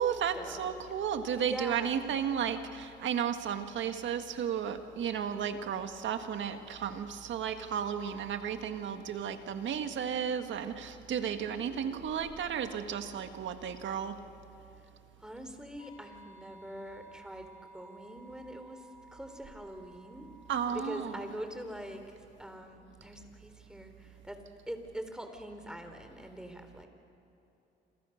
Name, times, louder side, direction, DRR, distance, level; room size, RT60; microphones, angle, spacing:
voice 1, 0.0-14.2 20.5-21.2, right 8 dB, 70° right, 8 dB, 1.8 m, -33 dB
voice 2, 1.4-2.1 10.7-11.0 11.4-12.6 15.2-17.5 17.7-20.3 20.7-24.4 24.7-26.9, equal, 5° right, 6 dB, 3.5 m, -44 dB
sound 1, 15.8-21.4, right 3 dB, 85° left, 6.2 m, -55 dB
27.5 x 27.5 x 6.6 m, 2.9 s
cardioid pair, 90°, 20 cm